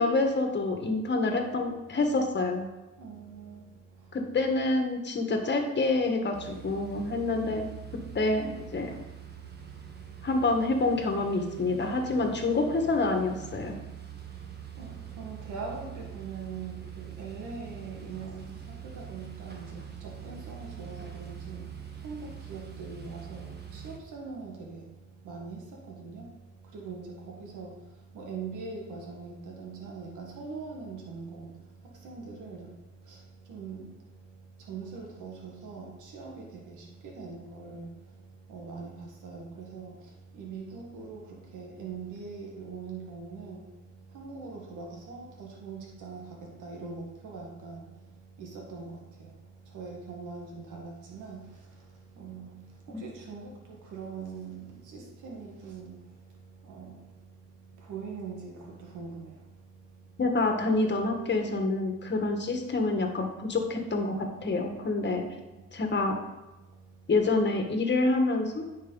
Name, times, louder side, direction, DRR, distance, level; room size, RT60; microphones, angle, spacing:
voice 1, 0.0-2.7 4.1-7.6 8.1-8.9 10.2-13.7 52.9-53.0 60.2-65.2 65.7-66.2 67.1-68.6, left 3 dB, 35° left, 1.6 m, -27 dB
voice 2, 3.0-4.4 8.1-8.2 9.3-10.3 14.1-60.2 65.1-65.7 66.6-67.1, right 4 dB, 80° right, 1.8 m, -43 dB
sound 1, 6.3-24.0, right 9 dB, 35° right, 1.3 m, -44 dB
9.6 x 5.3 x 3.9 m
cardioid pair, 90°, 30 cm